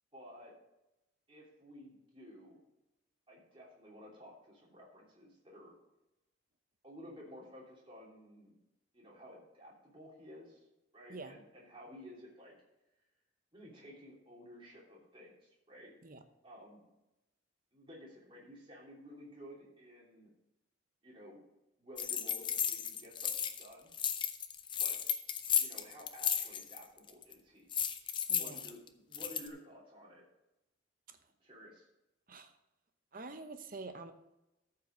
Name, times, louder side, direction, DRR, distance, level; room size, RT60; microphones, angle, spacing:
voice 1, 0.1-0.5 1.3-2.6 3.3-5.7 6.8-8.5 8.9-10.7 10.9-12.5 13.5-15.9 16.4-16.9 17.7-20.3 21.0-21.4 21.8-23.9 24.8-25.0 25.6-27.7 28.3-30.2 31.4-31.9, equal, 25° right, -4 dB, 2.9 m, -53 dB
voice 2, 11.1-11.4 16.0-16.2 28.3-28.7 31.1-31.2 32.3-32.5 33.1-34.1, right 3 dB, 45° right, 8 dB, 0.9 m, -47 dB
sound 1, 22.0-23.7 23.9-26.8 27.1-27.3 27.7-29.5, left 8 dB, 25° left, 0.6 m, -34 dB
13.5 x 5.8 x 5.0 m, 0.94 s
head